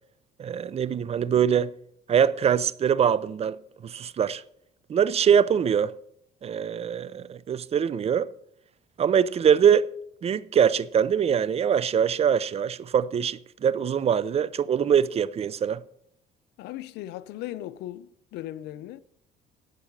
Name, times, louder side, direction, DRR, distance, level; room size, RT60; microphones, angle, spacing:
voice 1, 0.4-1.7 2.1-4.4 4.9-5.9 6.4-8.3 9.0-9.9 10.2-15.8, right 8 dB, 35° right, 0.6 m, -23 dB
voice 2, 16.6-19.0, left 13 dB, 85° left, 0.7 m, -37 dB
11.5 x 8.3 x 6.5 m
cardioid pair, 110°, 17 cm